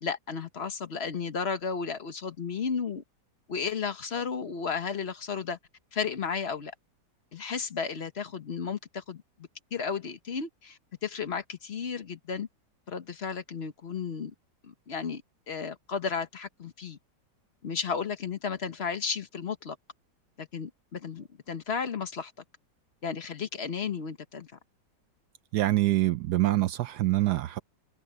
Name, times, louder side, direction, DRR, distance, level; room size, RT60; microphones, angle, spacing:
voice 1, 0.0-3.0 3.5-5.6 5.9-6.7 7.3-9.2 9.7-12.5 12.9-14.3 14.6-15.2 15.5-17.0 17.6-19.8 20.4-22.3 23.0-24.5, left 6 dB, 40° left, 1.2 m, -33 dB
voice 2, 25.5-27.6, right 16 dB, 75° right, 1.1 m, -25 dB
omnidirectional pair, 1.9 m